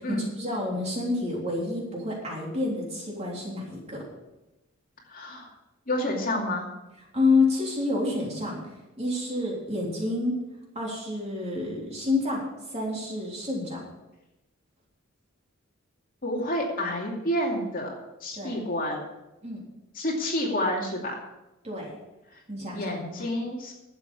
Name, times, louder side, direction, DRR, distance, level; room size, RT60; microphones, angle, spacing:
voice 1, 0.0-4.0 7.1-8.6 9.0-10.4 10.8-12.4 12.7-13.8 18.3-18.6 19.4-19.6 21.6-21.9 22.5-23.3, left 3 dB, 30° right, -3 dB, 3.5 m, -28 dB
voice 2, 5.1-5.5 5.9-6.7 16.2-17.9 18.2-19.0 20.0-21.1 22.7-23.7, left 1 dB, 40° left, -1 dB, 2.6 m, -29 dB
12.0 x 8.2 x 7.0 m, 0.98 s
head